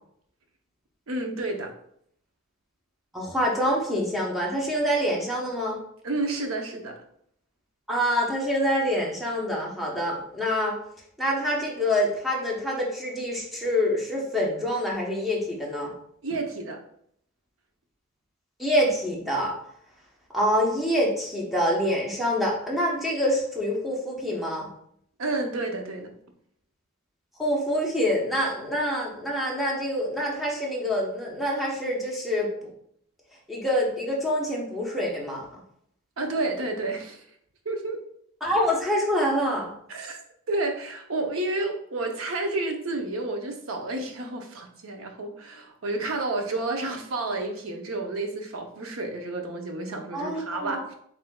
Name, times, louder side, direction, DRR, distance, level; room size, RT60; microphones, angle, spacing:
voice 1, 1.1-1.7 6.0-7.0 16.2-16.8 25.2-26.1 36.2-37.2 37.6-38.0 39.9-40.2 40.5-51.0, right 2 dB, 75° right, 4 dB, 0.7 m, -30 dB
voice 2, 3.1-5.8 7.9-10.7 11.2-15.9 18.6-19.5 20.3-24.7 27.4-32.5 33.5-35.4 38.4-39.7 50.1-50.8, equal, ahead, -4 dB, 0.9 m, -26 dB
7.6 x 2.6 x 2.3 m, 0.68 s
head